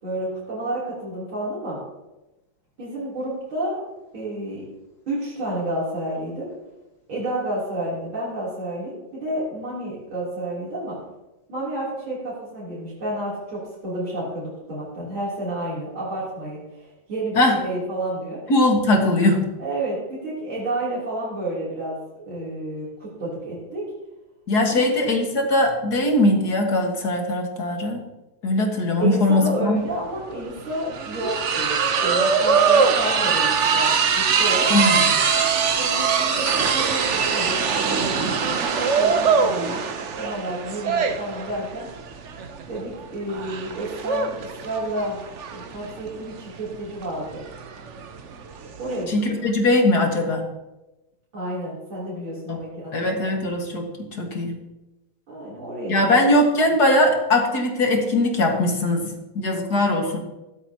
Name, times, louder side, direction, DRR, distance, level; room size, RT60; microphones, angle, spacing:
voice 1, 0.0-1.8 2.8-3.8 4.1-4.6 5.1-6.5 7.1-11.0 11.5-18.4 19.6-23.8 24.7-24.9 29.0-34.7 35.8-39.8 40.2-41.9 42.7-45.2 45.5-47.4 48.8-49.4 51.3-53.2 55.3-56.0, right 1 dB, 85° right, -8 dB, 4.4 m, -30 dB
voice 2, 18.5-19.4 24.5-28.0 28.4-29.8 34.7-35.1 49.1-50.4 52.5-52.6 52.9-54.5 55.9-60.2, left 1 dB, 50° left, 2 dB, 2.3 m, -20 dB
sound 1, 29.8-29.9 30.2-49.0, right 6 dB, 55° right, 0.8 m, -22 dB
15.0 x 13.0 x 2.9 m, 1.0 s
omnidirectional pair, 2.2 m